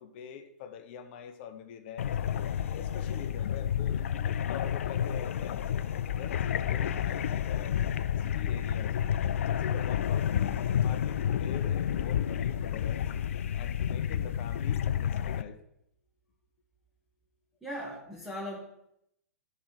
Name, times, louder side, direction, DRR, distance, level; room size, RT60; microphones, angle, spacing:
voice 1, 0.0-2.1 2.6-5.7 6.1-7.8 8.2-9.0 9.3-13.1 13.6-15.6, left 7 dB, 40° left, 9 dB, 0.8 m, -44 dB
sound 1, 2.0-15.4, left 9 dB, 55° left, 0.3 m, -30 dB
voice 2, 17.6-18.6, equal, 5° right, -5 dB, 1.3 m, -38 dB
5.9 x 5.4 x 6.3 m, 0.79 s
figure-of-eight pair, 115°, 9 cm